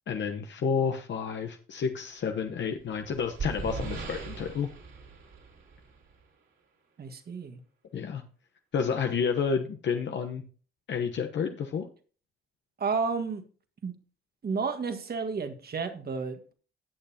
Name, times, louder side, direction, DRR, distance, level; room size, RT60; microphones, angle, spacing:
voice 1, 0.1-4.7 7.9-8.2 8.7-10.4 10.9-11.9, left 6 dB, 60° left, 5 dB, 1.0 m, -30 dB
sound 1, 2.6-6.2, right 4 dB, 65° right, 4.0 m, -39 dB
voice 2, 7.0-7.6 12.8-13.4 13.8-13.9 14.4-16.5, right 5 dB, 50° right, 7 dB, 1.7 m, -31 dB
18.0 x 6.7 x 2.9 m, 0.40 s
cardioid pair, 75°, 21 cm